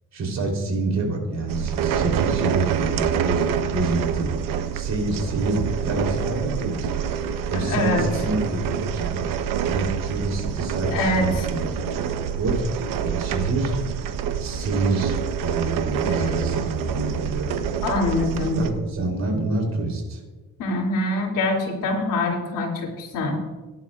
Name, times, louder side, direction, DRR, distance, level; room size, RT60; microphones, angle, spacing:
voice 1, 0.1-4.3 4.7-7.1 7.5-9.2 9.6-11.8 12.4-13.7 14.4-17.5 18.5-20.2, right 2 dB, 55° right, 1 dB, 3.4 m, -27 dB
sound 1, 1.5-18.7, right 7 dB, 85° right, 0.9 m, -27 dB
voice 2, 7.5-8.0 10.9-11.3 17.8-18.6 20.6-23.4, left 2 dB, 90° left, -1 dB, 2.7 m, -24 dB
18.0 x 10.5 x 2.4 m, 1.2 s
cardioid pair, 115°, 32 cm